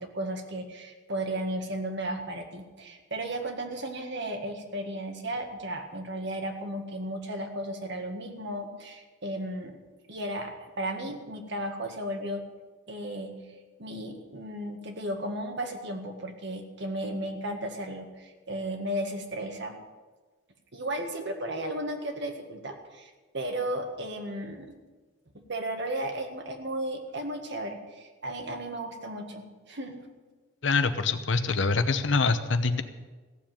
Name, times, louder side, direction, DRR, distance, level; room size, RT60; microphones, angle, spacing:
voice 1, 0.0-9.8 10.1-12.4 12.9-13.3 13.8-19.8 20.7-24.7 25.3-30.0, right 1 dB, 60° right, 4 dB, 1.8 m, -34 dB
voice 2, 30.6-32.8, left 4 dB, 65° left, 10 dB, 0.9 m, -25 dB
15.5 x 7.3 x 9.0 m, 1.3 s
head